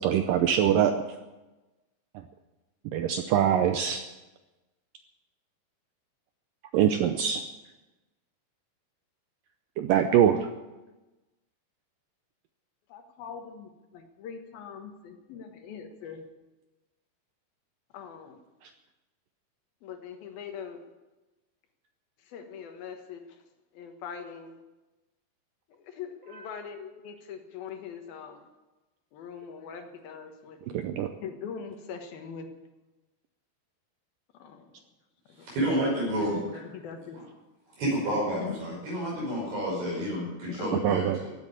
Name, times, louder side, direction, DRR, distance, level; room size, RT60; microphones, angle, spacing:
voice 1, 0.0-0.9 2.9-4.0 6.7-7.4 9.8-10.4 30.7-31.1 40.8-41.2, right 9 dB, 85° right, 7 dB, 1.9 m, -23 dB
voice 2, 12.9-16.2 17.9-18.4 19.8-20.8 22.3-23.4 23.7-24.5 25.7-28.5 29.1-30.6 31.2-32.5 34.4-34.8 35.3-35.5 36.3-37.2 38.4-38.6 40.4-41.0, left 7 dB, 65° left, 6 dB, 3.0 m, -42 dB
voice 3, 35.4-36.6 37.8-41.4, equal, 65° right, -5 dB, 7.4 m, -30 dB
15.5 x 9.1 x 9.6 m, 1.1 s
omnidirectional pair, 4.9 m